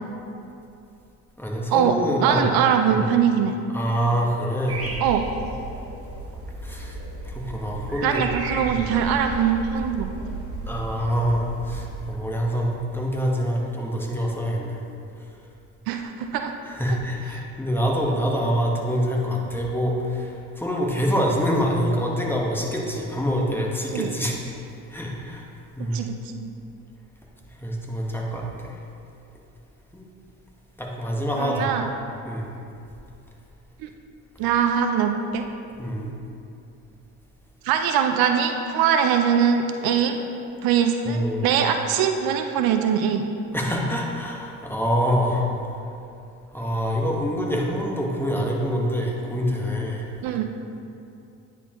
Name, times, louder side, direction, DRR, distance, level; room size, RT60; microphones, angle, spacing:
voice 1, 1.4-2.6 2.9-3.0 3.7-5.0 6.6-7.0 7.2-8.2 8.6-8.8 10.7-14.8 16.7-24.4 24.9-25.5 25.7-26.0 27.6-28.8 29.9-30.0 30.8-31.9 32.2-32.5 35.8-36.1 41.0-41.5 43.5-45.5 46.5-50.1, equal, 5° left, -2 dB, 1.2 m, -25 dB
voice 2, 2.2-3.6 5.0-5.3 8.0-10.1 15.9-16.5 16.9-17.0 23.9-24.1 25.9-26.5 31.4-31.9 33.8-33.9 34.4-35.5 37.6-40.2 40.6-43.3 50.2-50.5, right 8 dB, 75° right, 6 dB, 0.5 m, -22 dB
sound 1, 4.7-12.2, right 2 dB, 40° right, 1.2 m, -34 dB
9.7 x 4.4 x 2.9 m, 2.7 s
supercardioid pair, 65°, 37 cm